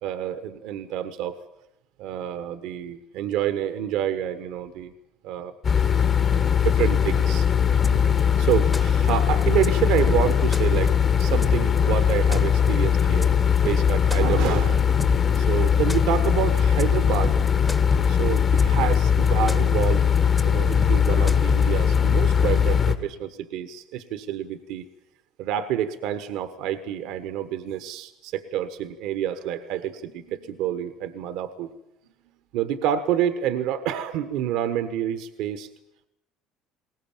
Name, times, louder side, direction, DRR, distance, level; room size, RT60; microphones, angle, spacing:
voice 1, 0.0-1.4 2.0-4.9 5.2-5.5 6.3-7.5 8.4-13.3 13.6-14.9 15.4-17.4 18.1-20.1 20.4-24.8 25.4-31.7 32.5-35.7, right 10 dB, 70° right, 11 dB, 1.3 m, -28 dB
sound 1, 5.6-23.0, left 7 dB, 40° left, 2.3 m, -20 dB
sound 2, 7.8-8.2 8.5-9.1 9.4-9.7 10.0-11.8 12.1-12.7 13.0-13.2 13.6-15.4 15.7-16.3 16.6-16.8 17.1-18.9 19.3-19.8 20.2-20.4 20.7-22.0, left 2 dB, 15° left, 1.5 m, -30 dB
21.0 x 18.0 x 8.9 m, 0.84 s
hypercardioid pair, 70°, 0 cm